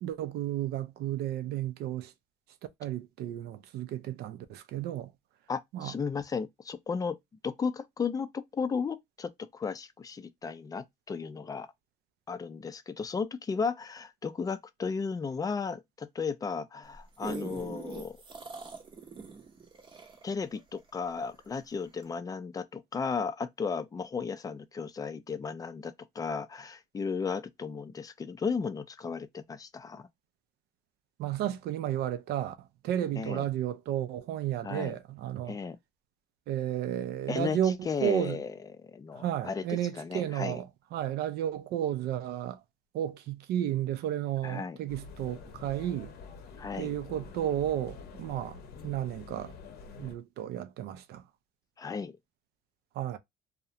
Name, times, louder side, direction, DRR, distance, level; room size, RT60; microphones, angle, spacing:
voice 1, 0.0-2.1 2.8-5.1 5.7-5.9 31.2-35.6 36.5-38.4 39.1-42.6 42.9-46.1 46.7-49.5 50.0-51.2 53.0-53.2, right 11 dB, 75° right, 0.4 m, -33 dB
voice 2, 5.5-7.2 7.4-11.7 12.3-18.2 20.2-30.1 33.2-33.4 34.6-34.9 35.5-35.8 37.3-37.6 37.9-38.5 38.9-40.6 44.4-44.8 46.6-47.0 51.8-52.2, left 5 dB, 20° left, 0.3 m, -34 dB
sound 1, 16.8-21.5 22.0-22.1, right 4 dB, 30° right, 0.6 m, -43 dB
sound 2, 44.9-50.2, left 5 dB, 70° left, 0.6 m, -47 dB
2.4 x 2.1 x 2.7 m
cardioid pair, 110°, 17 cm